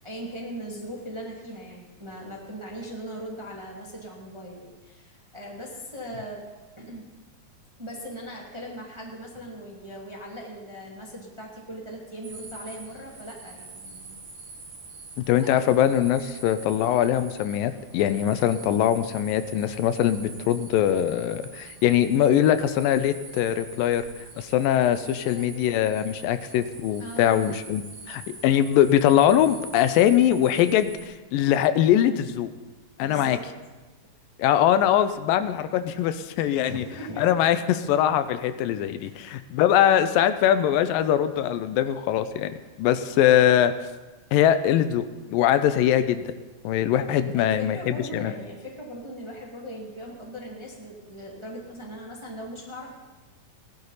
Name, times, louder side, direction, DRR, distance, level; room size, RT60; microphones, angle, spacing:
voice 1, 0.0-6.5 6.8-7.1 7.8-14.2 15.4-15.7 25.1-25.6 27.0-27.5 33.0-33.4 36.6-37.3 39.0-39.2 47.1-52.9, equal, 10° right, -3 dB, 1.6 m, -39 dB
sound 1, 12.2-31.0, right 3 dB, 55° right, 3.2 m, -45 dB
voice 2, 15.2-24.1 24.4-32.5 33.0-33.4 34.4-36.8 37.2-43.7 44.3-46.2 46.6-48.3, left 10 dB, 90° left, 11 dB, 2.3 m, -22 dB
18.5 x 12.0 x 4.1 m, 1.2 s
omnidirectional pair, 4.0 m